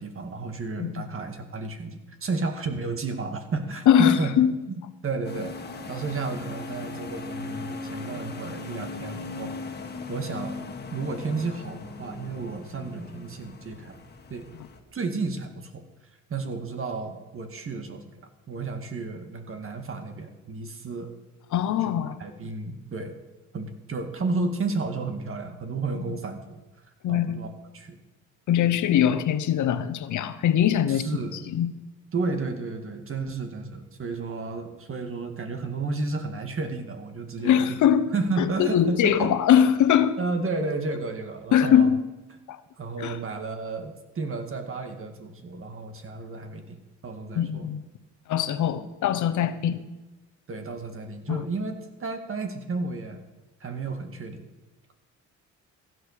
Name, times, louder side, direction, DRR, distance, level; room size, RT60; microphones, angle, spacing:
voice 1, 0.0-4.3 4.7-5.5 5.9-9.6 10.1-10.6 10.9-14.0 14.3-14.5 14.9-15.8 16.3-18.1 18.5-21.1 21.8-21.9 22.2-23.1 23.5-26.6 27.1-27.5 27.7-28.0 30.9-31.5 32.1-37.8 38.1-39.4 40.2-41.9 42.8-46.8 47.0-47.7 50.5-53.2 53.6-54.5, right 3 dB, 45° right, 6 dB, 2.0 m, -32 dB
voice 2, 3.9-4.5 21.5-22.2 27.0-27.4 28.5-31.0 31.5-31.7 37.4-38.0 38.4-40.1 41.5-42.0 42.5-42.6 43.0-43.2 47.4-47.8 48.3-49.8 51.3-51.4, left 9 dB, 75° left, 12 dB, 1.0 m, -21 dB
sound 1, 5.2-14.8, left 3 dB, 35° left, 1.8 m, -38 dB
15.5 x 7.8 x 6.6 m, 1.1 s
cardioid pair, 90°, 30 cm